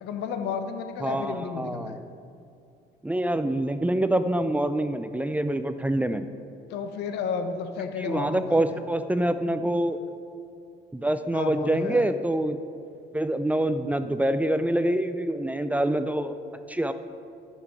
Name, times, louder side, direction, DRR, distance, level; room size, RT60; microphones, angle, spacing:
voice 1, 0.0-2.0 6.7-8.8 11.3-12.1, left 6 dB, 80° left, 7 dB, 0.9 m, -32 dB
voice 2, 1.0-2.0 3.0-6.3 8.0-10.0 10.9-12.6 13.1-16.4 16.7-16.9, right 1 dB, 10° right, 10 dB, 0.4 m, -26 dB
13.0 x 5.9 x 4.8 m, 2.6 s
cardioid pair, 110°, 17 cm